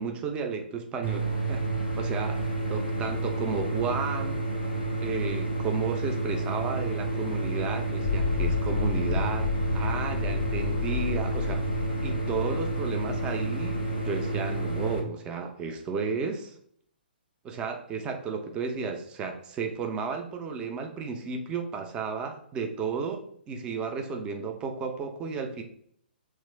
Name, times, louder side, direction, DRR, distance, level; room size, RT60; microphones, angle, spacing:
voice 1, 0.0-1.7 2.0-2.4 2.7-4.4 5.0-11.7 12.0-16.6 17.4-25.6, right 5 dB, 15° right, 5 dB, 0.4 m, -33 dB
sound 1, 1.0-15.0, right 2 dB, 85° right, 1.1 m, -30 dB
sound 2, 8.0-13.3, left 6 dB, 55° left, 0.3 m, -31 dB
3.1 x 2.4 x 3.2 m, 0.66 s
figure-of-eight pair, 120°, 6 cm